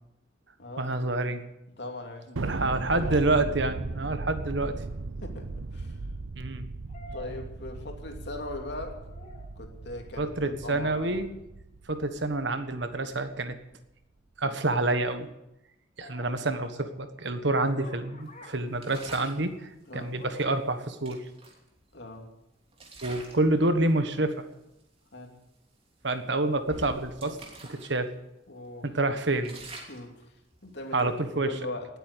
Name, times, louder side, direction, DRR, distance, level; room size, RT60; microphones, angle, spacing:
voice 1, 0.8-1.4 2.4-4.7 6.4-6.6 10.2-11.3 11.9-13.6 14.4-15.3 16.0-21.2 23.0-24.4 26.0-27.4 27.7-28.1 28.8-29.5 30.9-31.5, right 2 dB, 65° right, 9 dB, 1.4 m, -28 dB
voice 2, 1.8-3.3 5.2-6.0 7.1-9.0 9.6-11.2 16.2-16.4 19.9-20.1 21.9-22.3 25.1-25.4 28.5-28.9 29.9-30.2 30.6-31.1 31.4-31.9, left 2 dB, 60° left, 3 dB, 2.7 m, -40 dB
Thunder, 2.4-13.0, right 3 dB, 85° right, 0.7 m, -37 dB
sound 1, 6.9-8.2 8.6-9.6 12.3-12.6 16.0-19.5 20.2-20.7, equal, 35° left, 3.9 m, -51 dB
sound 2, 18.8-19.4 20.6-20.7 21.1-22.3 22.7-23.5 23.9-24.2 24.8-24.9 25.3-25.5 26.0-27.9 28.3-28.4 28.8-31.4, right 2 dB, 30° right, 3.0 m, -46 dB
19.0 x 8.4 x 8.3 m, 0.87 s
head